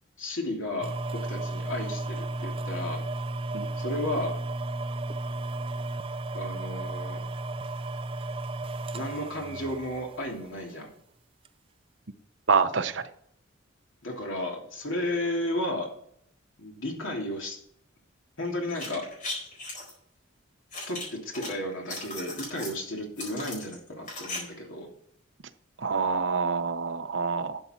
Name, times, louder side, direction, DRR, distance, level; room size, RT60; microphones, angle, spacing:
voice 1, 0.2-0.9 1.3-3.0 3.8-4.3 6.3-7.2 8.9-10.9 14.0-15.9 16.6-17.6 18.4-19.0 20.9-21.0 21.2-24.9, left 1 dB, 80° left, 0 dB, 2.9 m, -33 dB
sound 1, 0.8-10.8 11.4-11.5, right 2 dB, 25° right, 0.4 m, -34 dB
voice 2, 12.5-13.0 25.8-27.6, right 5 dB, 65° right, 10 dB, 0.8 m, -26 dB
sound 2, 18.7-19.9 20.7-21.5 21.8-22.8 23.2-24.4 24.6-24.7, left 2 dB, 40° left, 4.3 m, -37 dB
12.0 x 7.3 x 4.4 m, 0.70 s
head